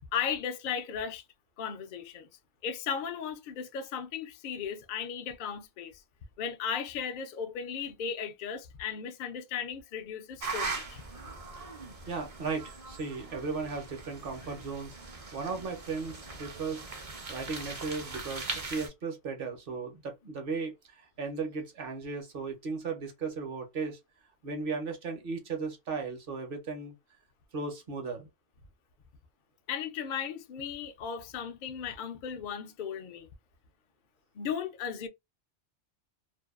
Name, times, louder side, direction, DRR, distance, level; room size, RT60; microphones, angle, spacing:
voice 1, 0.1-1.2 1.6-2.3 2.6-6.0 6.4-11.0 29.7-33.3 34.3-35.1, left 7 dB, 60° left, 0.6 m, -36 dB
sound 1, 10.4-18.9, right 3 dB, 40° right, 0.6 m, -40 dB
voice 2, 12.1-15.0 15.3-16.9 17.3-24.0 24.4-26.9 27.5-28.3, right 4 dB, 55° right, 0.9 m, -36 dB
2.6 x 2.2 x 2.3 m
omnidirectional pair, 1.2 m